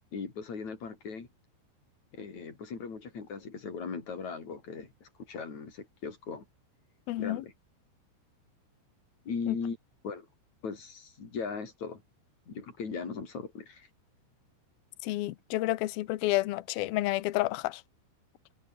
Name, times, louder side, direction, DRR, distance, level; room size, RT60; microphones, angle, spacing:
voice 1, 0.1-1.3 2.1-6.4 7.2-7.5 9.3-9.8 10.0-10.3 10.6-12.0 12.5-13.9, left 5 dB, 35° left, 5.7 m, -38 dB
voice 2, 7.1-7.4 9.5-9.6 15.0-17.8, left 17 dB, 75° left, 2.2 m, -30 dB
omnidirectional pair, 5.6 m